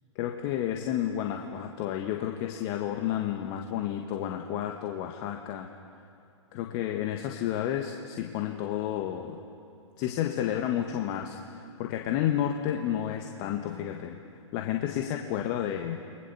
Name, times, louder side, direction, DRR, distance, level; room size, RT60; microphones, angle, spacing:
voice 1, 0.1-5.7 6.5-9.4 10.0-14.2 14.5-16.0, left 10 dB, 35° left, 3 dB, 1.7 m, -31 dB
29.5 x 22.5 x 7.2 m, 2.7 s
hypercardioid pair, 125°, 16 cm